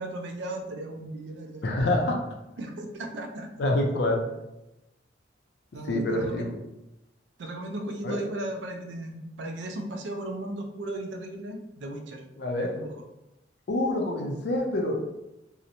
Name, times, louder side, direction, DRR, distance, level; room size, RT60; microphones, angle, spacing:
voice 1, 0.0-1.9 2.6-3.5 5.7-6.5 7.4-12.2 12.6-12.9, right 1 dB, 80° right, 4 dB, 0.4 m, -36 dB
voice 2, 1.6-2.2 3.6-4.3 5.8-6.6 8.0-8.2 12.4-12.8 13.7-15.0, left 1 dB, 65° left, 1 dB, 0.4 m, -26 dB
2.8 x 2.0 x 2.5 m, 0.91 s
head